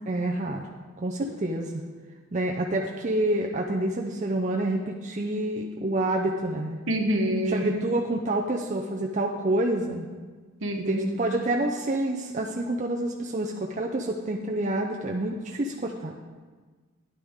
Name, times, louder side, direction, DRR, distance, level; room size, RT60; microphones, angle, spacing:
voice 1, 0.1-0.6 1.0-1.7 2.3-6.8 7.5-10.1 10.8-16.2, right 1 dB, 35° right, -1 dB, 0.6 m, -28 dB
voice 2, 6.9-7.8 10.6-11.2, right 1 dB, 60° right, 2 dB, 1.3 m, -26 dB
12.5 x 9.9 x 3.6 m, 1.4 s
head